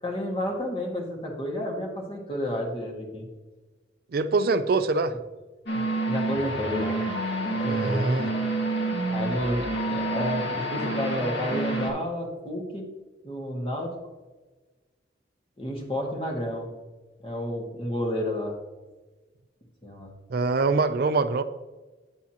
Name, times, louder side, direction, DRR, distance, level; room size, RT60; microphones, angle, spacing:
voice 1, 0.0-3.3 5.7-7.0 7.5-8.1 9.1-12.9 13.2-13.9 15.6-16.7 17.2-18.6 19.8-20.1, equal, 30° left, 0 dB, 1.7 m, -31 dB
voice 2, 4.1-5.1 7.6-8.3 20.3-21.4, right 3 dB, 55° right, 11 dB, 0.4 m, -24 dB
sound 1, 5.7-11.9, right 1 dB, 65° left, 2.1 m, -28 dB
9.2 x 8.2 x 2.9 m, 1.2 s
head